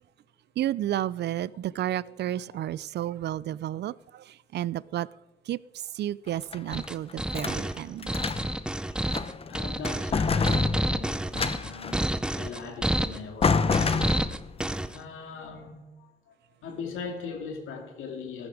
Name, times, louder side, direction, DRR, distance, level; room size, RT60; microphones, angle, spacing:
voice 1, 0.6-5.1 5.5-5.6 5.9-8.1, right 12 dB, 60° right, 0.4 m, -31 dB
sound 1, 6.3-7.6 8.0-8.6 9.0-9.5 9.9-12.0 13.0-13.1 13.4-14.6, left 5 dB, 30° left, 0.7 m, -28 dB
sound 2, 6.7-15.0, right 1 dB, 5° right, 0.6 m, -29 dB
voice 2, 9.5-14.2 14.9-16.3 16.6-18.5, left 5 dB, 80° left, 2.4 m, -40 dB
14.5 x 12.5 x 4.8 m
cardioid pair, 90°, 20 cm